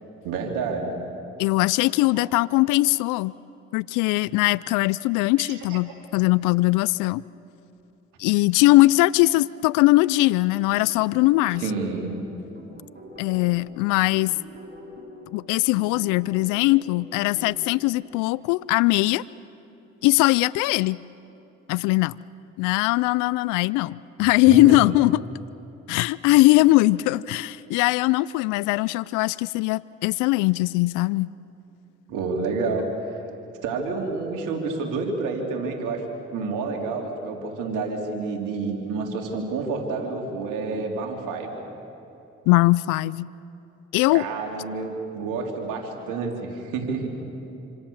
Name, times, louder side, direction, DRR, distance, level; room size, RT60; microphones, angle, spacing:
voice 1, 0.2-1.0 2.2-2.3 5.4-5.8 11.6-12.1 24.5-24.8 32.1-32.9 33.6-36.0 36.3-41.5 44.1-47.1, right 4 dB, 85° right, 2 dB, 3.7 m, -29 dB
voice 2, 1.4-3.3 3.7-7.2 8.2-11.6 13.2-14.4 15.3-19.2 20.0-21.0 21.7-22.2 22.6-25.2 25.9-31.3 42.5-43.3 43.9-44.3, left 20 dB, 85° left, 20 dB, 0.5 m, -20 dB
sound 1, 10.3-17.7, equal, 35° right, 6.2 m, -45 dB
26.5 x 26.0 x 7.3 m, 3.0 s
supercardioid pair, 55°, 30 cm